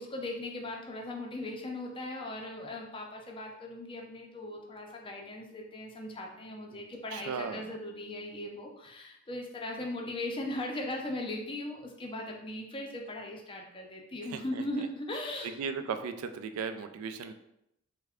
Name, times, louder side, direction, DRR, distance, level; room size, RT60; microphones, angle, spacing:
voice 1, 0.0-15.5, left 1 dB, 25° left, 0 dB, 0.5 m, -38 dB
voice 2, 7.1-7.7 14.3-14.9 15.4-17.3, right 6 dB, 80° right, 9 dB, 0.3 m, -37 dB
3.3 x 2.1 x 3.5 m, 0.80 s
head